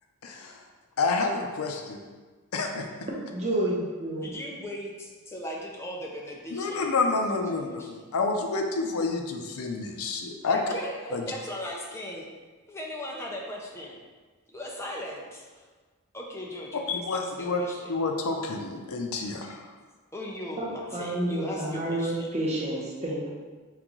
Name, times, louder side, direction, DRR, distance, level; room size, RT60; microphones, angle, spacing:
voice 1, 0.2-0.6 1.0-2.0 2.5-2.9 6.5-10.6 11.1-11.2 16.9-17.6 17.9-19.6, left 3 dB, 85° left, 3 dB, 0.5 m, -29 dB
voice 2, 3.3-4.3 20.6-23.3, right 1 dB, 30° right, -3 dB, 0.7 m, -29 dB
voice 3, 4.1-8.0 10.4-12.3 12.7-14.0 14.5-15.6 16.1-17.9 20.1-22.3, left 1 dB, 10° left, -1 dB, 0.5 m, -38 dB
3.7 x 3.6 x 3.0 m, 1.4 s
head